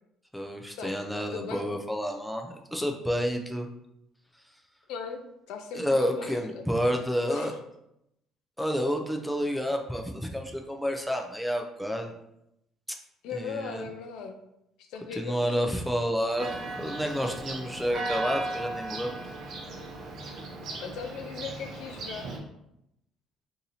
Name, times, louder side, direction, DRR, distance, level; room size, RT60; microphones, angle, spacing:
voice 1, 0.3-3.7 5.7-7.5 8.6-12.1 12.9-13.0 13.3-13.9 15.1-19.2, equal, ahead, 2 dB, 0.4 m, -30 dB
voice 2, 1.3-1.6 4.9-6.6 7.3-7.5 13.2-14.4 14.8-15.8 20.8-22.3, left 5 dB, 80° left, 5 dB, 0.4 m, -38 dB
Church bell, 16.4-22.4, right 2 dB, 60° right, 0.7 m, -36 dB
2.7 x 2.6 x 4.0 m, 0.81 s
cardioid pair, 115°, 0 cm